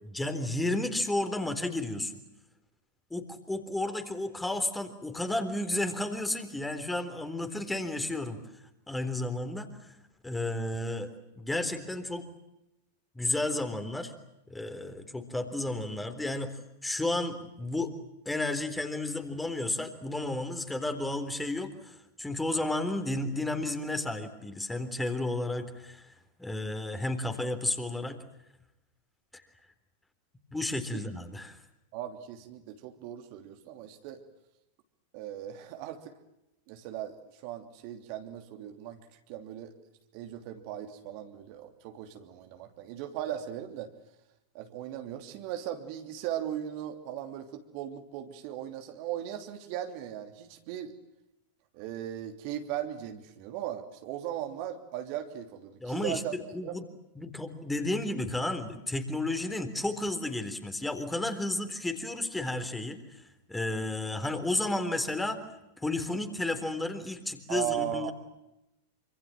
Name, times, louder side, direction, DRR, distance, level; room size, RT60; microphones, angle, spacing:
voice 1, 0.0-2.1 3.1-8.4 8.9-9.7 10.2-11.1 11.4-12.3 13.2-14.1 14.5-16.5 16.8-17.9 18.3-26.1 26.4-28.2 30.5-31.6 55.8-56.8 57.2-63.2 63.5-65.4 65.8-68.1, left 2 dB, 5° left, 8 dB, 3.7 m, -32 dB
voice 2, 31.9-34.2 35.1-36.1 36.7-39.7 40.1-43.9 44.5-50.9 51.7-56.3 56.6-56.8 67.5-68.1, right 11 dB, 45° right, 6 dB, 3.0 m, -38 dB
27.5 x 26.0 x 7.6 m, 0.90 s
figure-of-eight pair, 90°, 0 cm